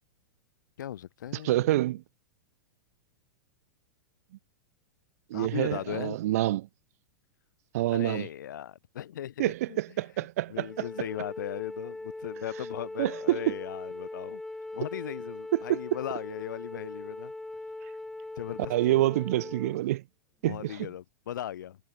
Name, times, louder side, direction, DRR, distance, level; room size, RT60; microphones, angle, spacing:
voice 1, 0.8-1.8 5.3-6.2 7.9-9.8 10.5-14.4 14.7-17.3 18.4-19.1 20.4-21.8, left 11 dB, 75° left, 3.8 m, -38 dB
voice 2, 1.3-2.0 5.3-6.7 7.7-8.3 9.4-10.7 13.0-13.5 15.7-15.8 18.7-20.0 20.4-20.9, right 15 dB, 50° right, 1.0 m, -27 dB
Wind instrument woodwind instrument, 10.6-19.8, left 2 dB, 5° left, 0.7 m, -40 dB
supercardioid pair, 170°, 10 cm